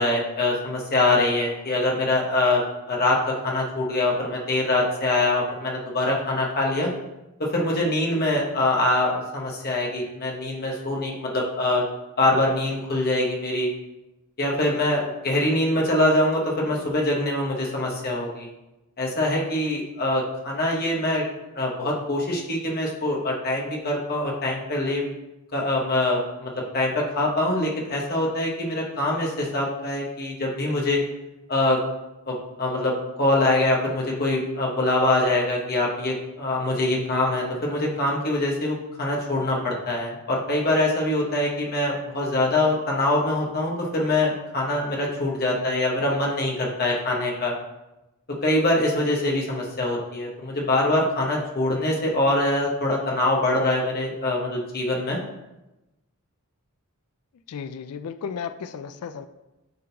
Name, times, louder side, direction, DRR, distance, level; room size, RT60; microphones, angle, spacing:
voice 1, 0.0-2.6 2.9-3.2 3.4-6.9 7.5-11.8 12.2-13.7 14.4-18.5 19.0-21.2 21.5-25.1 25.5-31.0 31.5-31.8 32.3-47.5 48.4-55.2, left 1 dB, 45° left, -2 dB, 1.3 m, -24 dB
voice 2, 57.5-59.3, left 6 dB, 85° left, 11 dB, 0.4 m, -34 dB
9.4 x 3.8 x 2.9 m, 0.98 s
head